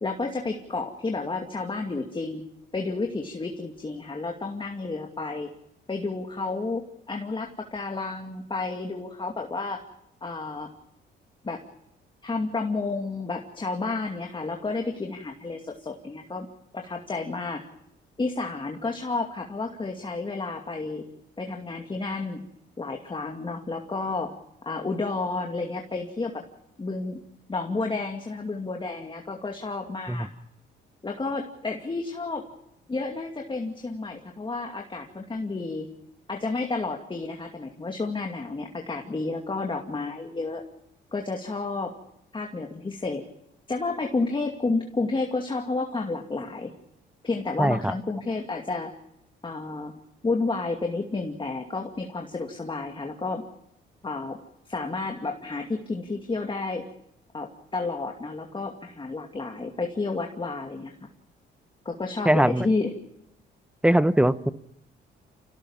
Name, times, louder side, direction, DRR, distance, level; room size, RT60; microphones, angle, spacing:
voice 1, 0.0-2.5 2.7-5.5 5.9-9.8 10.2-10.7 11.4-11.6 12.2-16.5 16.7-17.6 18.2-21.1 21.4-22.5 22.8-24.3 24.7-26.4 26.8-27.2 27.5-30.3 31.0-32.5 32.9-35.9 36.3-40.6 41.1-41.9 42.3-43.2 43.7-46.7 47.2-48.9 49.4-50.0 50.2-53.4 54.0-54.4 54.7-56.8 57.3-60.9 61.8-62.9, left 3 dB, 25° left, 3 dB, 2.4 m, -31 dB
voice 2, 47.6-47.9 62.2-62.7 63.8-64.5, right 1 dB, 5° right, 14 dB, 1.0 m, -21 dB
27.0 x 17.5 x 7.3 m, 0.82 s
cardioid pair, 90°, 20 cm